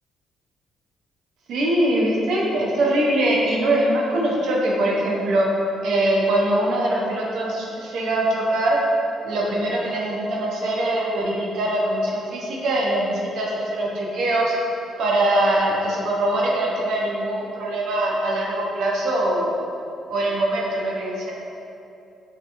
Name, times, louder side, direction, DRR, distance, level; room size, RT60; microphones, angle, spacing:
voice 1, 1.5-5.5 5.8-8.8 9.2-14.5 15.0-19.5 20.1-21.3, right 1 dB, 80° right, -3 dB, 0.5 m, -22 dB
2.7 x 2.1 x 2.6 m, 2.6 s
cardioid pair, 90°, 0 cm